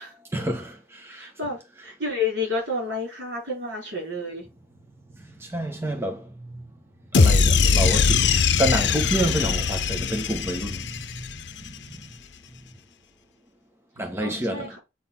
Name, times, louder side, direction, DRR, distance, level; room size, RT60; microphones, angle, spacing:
voice 1, 0.3-1.3 5.1-6.6 7.1-11.3 11.6-11.9 14.0-14.8, right 1 dB, 15° right, 1.0 m, -29 dB
voice 2, 1.1-4.4 14.2-14.8, left 3 dB, 75° right, 4.9 m, -30 dB
sound 1, 7.1-11.5, left 5 dB, 75° left, 0.6 m, -21 dB
8.5 x 4.1 x 5.8 m
head